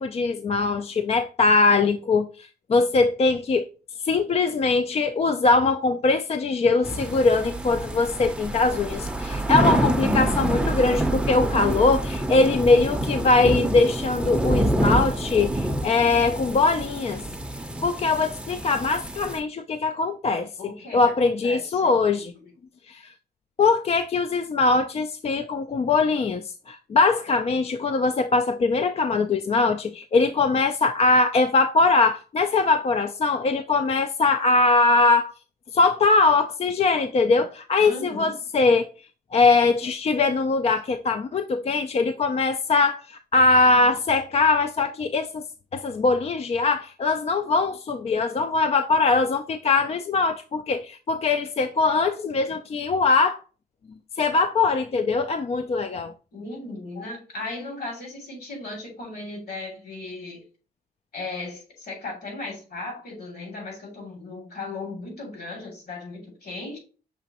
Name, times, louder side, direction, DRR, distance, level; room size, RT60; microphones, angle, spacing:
voice 1, 0.0-3.7 4.0-17.2 17.8-20.5 20.9-22.3 22.9-23.1 23.6-35.3 35.7-38.9 39.3-45.4 45.7-53.4 54.2-56.1, left 3 dB, 40° left, 0.3 m, -21 dB
sound 1, 6.8-19.4, right 1 dB, 5° right, 0.6 m, -27 dB
voice 2, 20.6-22.4 37.8-38.4 56.3-60.4 61.1-66.8, left 2 dB, 65° left, 2.5 m, -37 dB
6.1 x 2.9 x 2.8 m
cardioid pair, 80°, 17 cm